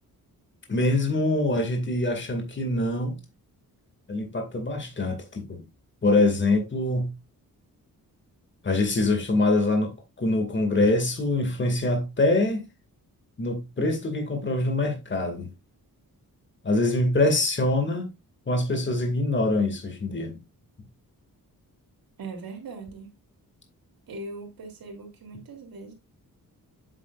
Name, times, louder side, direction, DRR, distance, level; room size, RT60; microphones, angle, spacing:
voice 1, 0.7-3.2 4.1-5.6 6.0-7.1 8.6-12.7 13.4-15.5 16.6-18.1 18.5-20.4, left 2 dB, 30° left, 2.1 m, -24 dB
voice 2, 22.2-23.2 24.1-25.9, right 3 dB, 75° right, 3.2 m, -40 dB
8.9 x 7.6 x 2.5 m
wide cardioid pair, 165°, 35 cm